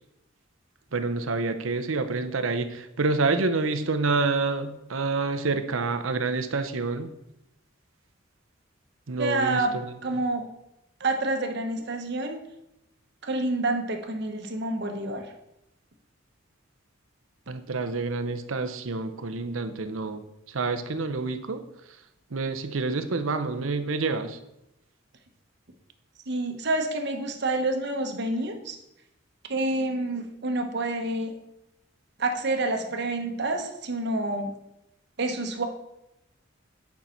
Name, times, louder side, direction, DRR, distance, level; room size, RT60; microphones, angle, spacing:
voice 1, 0.9-7.1 9.1-9.9 17.5-21.6 22.3-24.4, right 3 dB, 85° right, 9 dB, 0.8 m, -28 dB
voice 2, 9.2-10.5 11.0-12.4 13.2-15.3 26.3-28.8 29.5-31.3 32.2-34.5 35.2-35.7, right 2 dB, 55° right, 5 dB, 1.0 m, -28 dB
9.4 x 5.7 x 4.4 m, 0.86 s
head